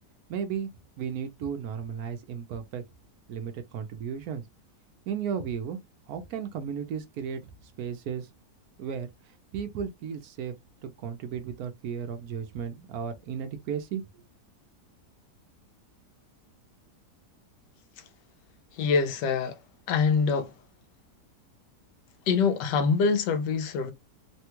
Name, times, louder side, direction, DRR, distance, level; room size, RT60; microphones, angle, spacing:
voice 1, 0.3-0.7 1.0-2.8 3.3-4.4 5.1-5.8 6.1-7.4 7.8-8.3 8.8-10.6 10.8-14.2, right 7 dB, 70° right, 1.0 m, -34 dB
voice 2, 18.7-20.6 22.3-23.9, left 5 dB, 85° left, 1.3 m, -25 dB
3.3 x 2.2 x 2.9 m
omnidirectional pair, 1.8 m